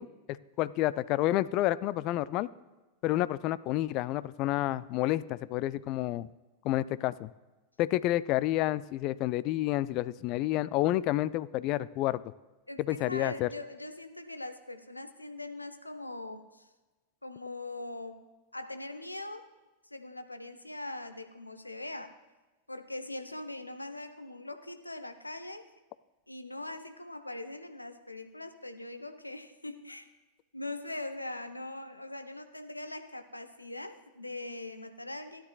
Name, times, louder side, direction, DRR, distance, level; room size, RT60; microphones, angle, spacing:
voice 1, 0.0-2.5 3.0-6.3 6.6-7.3 7.8-12.2 12.8-13.5, left 15 dB, 40° left, 17 dB, 0.3 m, -29 dB
voice 2, 12.7-16.7 17.2-18.2 18.5-19.5 19.9-22.2 22.7-25.7 26.3-30.1 30.5-35.4, left 2 dB, 85° left, 8 dB, 0.7 m, -41 dB
16.0 x 10.0 x 2.4 m, 1.2 s
figure-of-eight pair, 90°, 0 cm